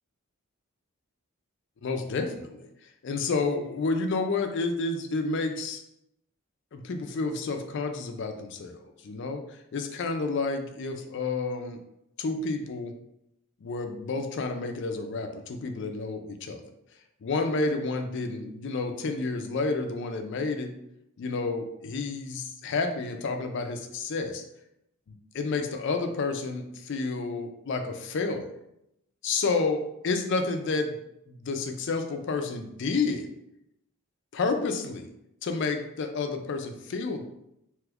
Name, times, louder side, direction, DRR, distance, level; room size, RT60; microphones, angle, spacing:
voice 1, 1.8-2.7 3.0-5.8 6.7-9.4 9.7-11.8 12.2-12.9 13.6-16.6 17.2-20.7 21.2-24.4 25.1-28.5 29.2-30.9 31.3-33.3 34.3-35.1 35.4-37.2, left 3 dB, 55° left, 5 dB, 0.4 m, -30 dB
2.9 x 2.3 x 3.4 m, 0.81 s
head